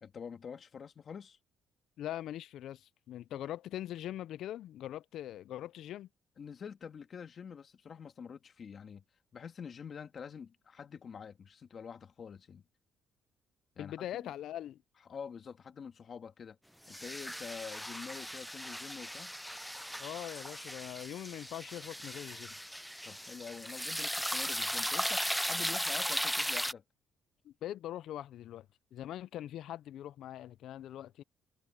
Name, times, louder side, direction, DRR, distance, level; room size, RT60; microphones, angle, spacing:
voice 1, 0.0-1.4 6.4-9.0 9.3-12.6 13.8-14.3 15.1-16.6 16.9-19.3 23.0-26.8, left 6 dB, 40° left, 2.0 m, -46 dB
voice 2, 2.0-6.1 13.8-14.8 20.0-22.5 27.4-28.7 28.9-31.2, left 12 dB, 65° left, 0.4 m, -42 dB
sound 1, 16.9-26.7, equal, ahead, 0.3 m, -37 dB
cardioid pair, 140°, 0 cm